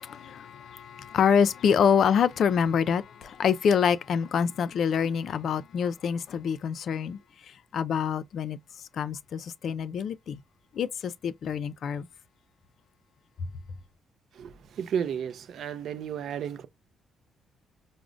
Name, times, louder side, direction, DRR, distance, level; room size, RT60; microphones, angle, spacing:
voice 1, 0.0-8.6 8.9-10.4 10.7-12.1, left 7 dB, 65° left, 0.4 m, -26 dB
voice 2, 14.3-16.7, right 8 dB, 65° right, 0.4 m, -33 dB
4.8 x 2.1 x 2.4 m
cardioid pair, 90°, 0 cm